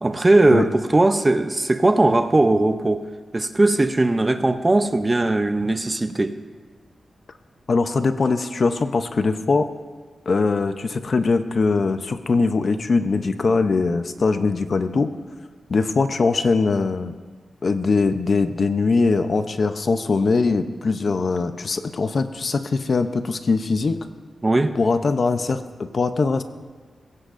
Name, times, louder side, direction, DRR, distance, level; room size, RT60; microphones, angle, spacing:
voice 1, 0.0-3.1 3.3-6.4 24.4-24.8, right 2 dB, 20° right, 9 dB, 0.6 m, -19 dB
voice 2, 7.7-9.7 10.3-15.1 15.7-17.1 17.6-24.1 24.8-25.6 25.9-26.4, left 4 dB, 45° left, 9 dB, 0.7 m, -21 dB
21.0 x 16.5 x 2.6 m, 1.4 s
wide cardioid pair, 135°, 0 cm